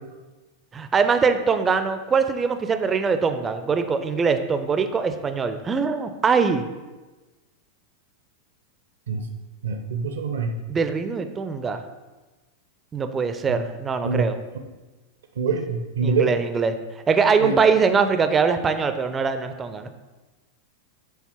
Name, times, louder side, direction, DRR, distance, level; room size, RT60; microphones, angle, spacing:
voice 1, 0.7-6.6 10.7-11.8 12.9-14.4 16.0-16.8 17.1-19.9, right 5 dB, 20° right, 9 dB, 0.5 m, -22 dB
voice 2, 9.6-10.6 13.5-13.6 14.0-14.3 15.4-16.3 17.4-17.6, right 5 dB, 65° right, 5 dB, 0.6 m, -24 dB
7.0 x 3.5 x 4.4 m, 1.2 s
figure-of-eight pair, 90°, 0 cm